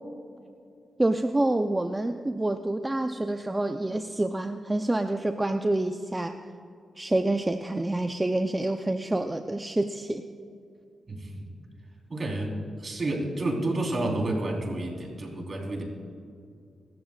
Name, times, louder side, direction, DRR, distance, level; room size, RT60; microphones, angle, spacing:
voice 1, 1.0-6.4 7.0-10.2, right 1 dB, 20° right, 7 dB, 0.6 m, -27 dB
voice 2, 11.1-11.5 12.1-12.5 12.8-15.8, right 2 dB, 45° right, -1 dB, 4.0 m, -30 dB
25.0 x 14.0 x 2.4 m, 2.4 s
cardioid pair, 60°, 0 cm